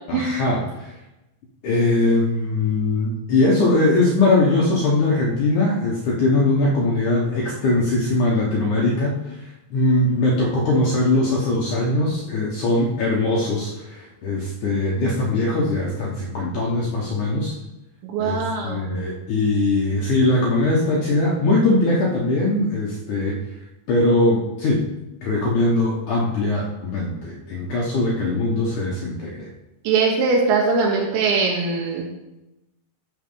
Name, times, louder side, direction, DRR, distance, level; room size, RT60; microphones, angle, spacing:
voice 1, 0.1-0.9 1.6-9.4 9.7-17.5 18.2-18.4 18.6-23.4 23.9-24.9 25.2-29.5, left 2 dB, 65° left, -3 dB, 2.0 m, -21 dB
voice 2, 18.0-18.9 29.9-32.0, right 4 dB, 90° right, -2 dB, 3.6 m, -21 dB
14.0 x 4.6 x 5.5 m, 0.96 s
omnidirectional pair, 5.0 m